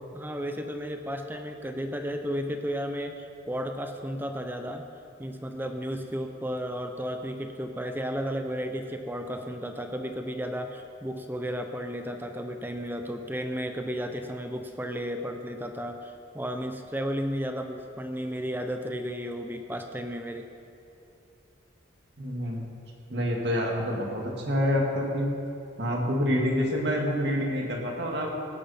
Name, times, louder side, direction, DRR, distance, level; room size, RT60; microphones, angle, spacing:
voice 1, 0.1-4.9 5.2-20.5, equal, 10° right, 5 dB, 0.7 m, -33 dB
voice 2, 22.2-22.7 23.1-25.3 25.8-28.3, equal, 60° right, 0 dB, 2.3 m, -27 dB
18.0 x 11.0 x 4.4 m, 2.7 s
head